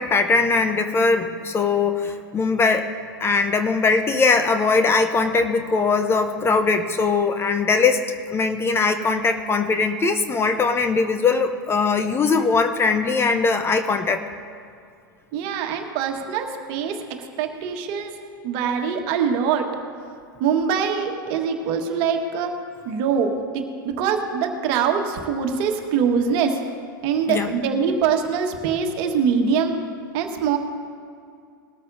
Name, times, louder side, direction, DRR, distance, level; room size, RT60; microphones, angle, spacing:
voice 1, 0.0-2.9 3.2-14.2 27.3-27.5, left 4 dB, 20° left, 8 dB, 0.7 m, -20 dB
voice 2, 15.3-17.0 17.4-18.1 18.4-19.7 20.4-22.5 22.8-26.6 27.0-29.7 30.1-30.6, right 6 dB, 50° right, 4 dB, 1.5 m, -23 dB
20.0 x 13.0 x 2.7 m, 2.4 s
hypercardioid pair, 95°, 11 cm